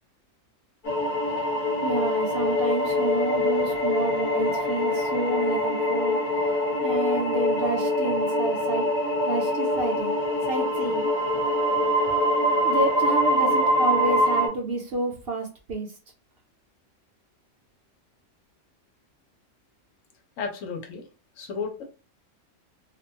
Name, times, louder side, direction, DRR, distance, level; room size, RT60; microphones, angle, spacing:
sound 1, 0.8-14.5, left 1 dB, 40° left, 1.1 m, -24 dB
voice 1, 1.8-6.2 6.8-8.9 9.2-10.1 10.5-11.1 12.6-15.9, right 2 dB, 60° right, 1 dB, 0.7 m, -29 dB
voice 2, 20.4-21.1 21.4-21.8, left 5 dB, 80° left, 3 dB, 1.1 m, -33 dB
2.5 x 2.2 x 2.8 m, 0.34 s
omnidirectional pair, 1.4 m